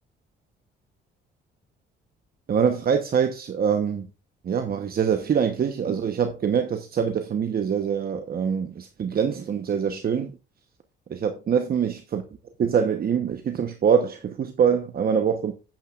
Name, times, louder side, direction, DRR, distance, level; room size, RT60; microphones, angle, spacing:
voice 1, 2.5-4.1 4.4-10.3 11.1-12.2 12.6-15.5, right 7 dB, 50° right, 1.1 m, -24 dB
11.5 x 9.1 x 2.5 m
cardioid pair, 90°, 20 cm